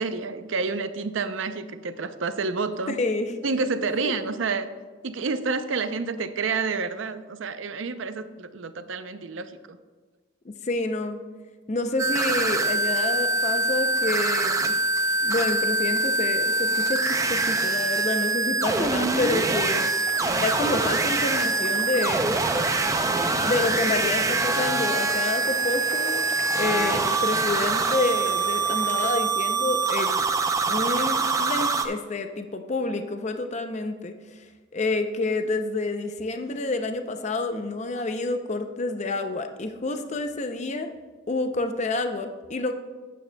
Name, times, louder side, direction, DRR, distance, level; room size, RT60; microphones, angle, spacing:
voice 1, 0.0-3.0 3.4-4.7 5.0-9.8, right 4 dB, 75° right, 10 dB, 0.6 m, -29 dB
voice 2, 2.9-3.4 4.0-4.1 10.6-11.2 11.7-14.7 15.2-19.9 20.4-22.4 23.4-26.3 26.5-30.3 30.7-34.4 34.7-40.9 41.3-42.7, left 2 dB, 35° left, 7 dB, 0.5 m, -28 dB
sound 1, 12.0-31.8, right 3 dB, 15° right, 0.5 m, -24 dB
sound 2, 20.0-29.1, left 1 dB, 10° left, 0.8 m, -39 dB
13.0 x 9.1 x 2.2 m, 1.4 s
head